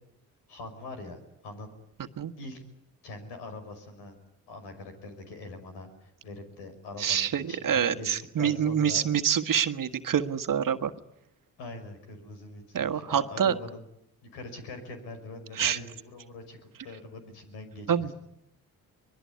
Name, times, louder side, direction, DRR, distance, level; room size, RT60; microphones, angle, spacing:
voice 1, 0.5-1.7 2.4-2.6 3.0-4.2 4.5-9.1 11.6-13.8 14.3-18.1, left 2 dB, 85° left, 7 dB, 5.8 m, -43 dB
voice 2, 7.0-10.9 12.7-13.6 15.5-15.8 17.9-18.1, right 8 dB, 55° right, 10 dB, 1.5 m, -26 dB
24.5 x 21.0 x 9.7 m, 0.79 s
supercardioid pair, 55°, 39 cm